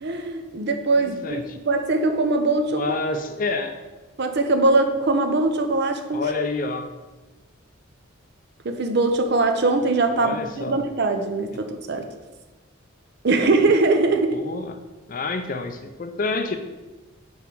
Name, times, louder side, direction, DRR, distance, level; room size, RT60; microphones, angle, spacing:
voice 1, 0.0-3.0 4.2-6.3 8.6-12.1 13.2-14.4, right 2 dB, 50° right, 7 dB, 0.6 m, -21 dB
voice 2, 1.0-1.6 2.7-3.8 6.1-6.9 10.1-10.8 11.5-11.6 14.3-14.8 15.1-16.6, left 3 dB, 40° left, 7 dB, 0.5 m, -28 dB
4.8 x 4.7 x 5.3 m, 1.2 s
head